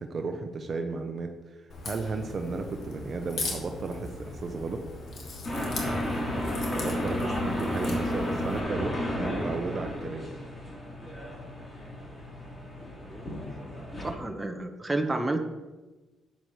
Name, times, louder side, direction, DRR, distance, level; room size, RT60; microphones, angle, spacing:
voice 1, 0.0-4.9 6.7-10.3, right 4 dB, 45° right, 5 dB, 0.9 m, -34 dB
Crack, 1.7-8.6, left 3 dB, 60° left, 2.7 m, -39 dB
sound 1, 5.4-14.1, left 1 dB, 30° left, 3.8 m, -32 dB
voice 2, 14.0-15.4, right 2 dB, 15° right, 4 dB, 1.3 m, -30 dB
13.5 x 9.4 x 3.3 m, 1.2 s
cardioid pair, 90°, 0 cm